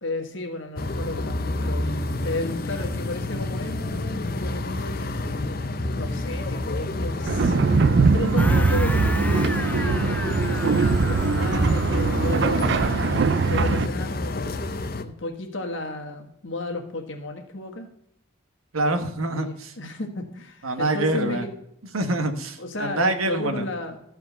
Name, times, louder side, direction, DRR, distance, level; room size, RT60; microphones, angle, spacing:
voice 1, 0.0-1.9 2.2-5.6 5.9-13.1 13.5-14.7 15.0-17.9 19.3-21.5 22.6-24.0, left 2 dB, 65° left, 3 dB, 1.5 m, -33 dB
sound 1, 0.8-15.0, left 2 dB, 45° left, 0.7 m, -29 dB
sound 2, 7.3-13.9, right 4 dB, 55° right, 0.4 m, -22 dB
sound 3, 8.4-12.8, left 2 dB, 10° left, 0.4 m, -35 dB
voice 2, 18.7-19.7 20.6-21.4 21.9-23.6, right 2 dB, 90° right, 7 dB, 1.3 m, -25 dB
13.5 x 4.7 x 6.7 m, 0.79 s
head